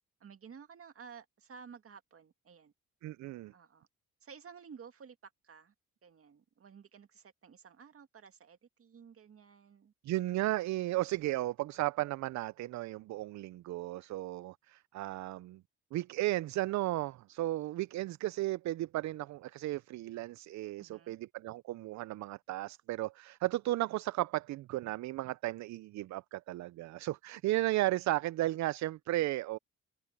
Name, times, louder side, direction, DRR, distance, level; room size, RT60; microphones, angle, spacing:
voice 1, 0.2-2.7 3.5-3.9 4.2-5.7 6.0-9.9 20.8-21.2, right 6 dB, 50° right, 2.2 m, -54 dB
voice 2, 3.0-3.5 10.0-15.6 15.9-29.6, right 16 dB, 65° right, 0.5 m, -34 dB
cardioid pair, 90°, 30 cm